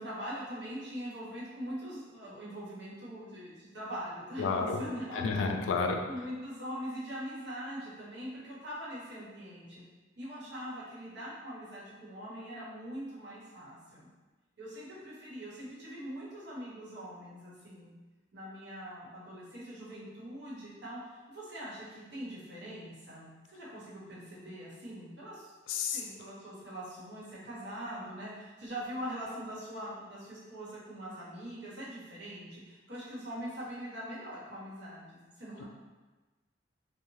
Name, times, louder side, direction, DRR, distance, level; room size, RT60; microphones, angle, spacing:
voice 1, 0.0-5.2 6.0-9.8 10.2-14.1 14.6-17.9 18.3-25.5 25.8-35.6, equal, 65° right, -7 dB, 0.9 m, -42 dB
voice 2, 4.4-4.8 5.1-6.0 25.7-26.0, left 4 dB, 90° left, 4 dB, 0.3 m, -30 dB
2.6 x 2.0 x 3.0 m, 1.2 s
head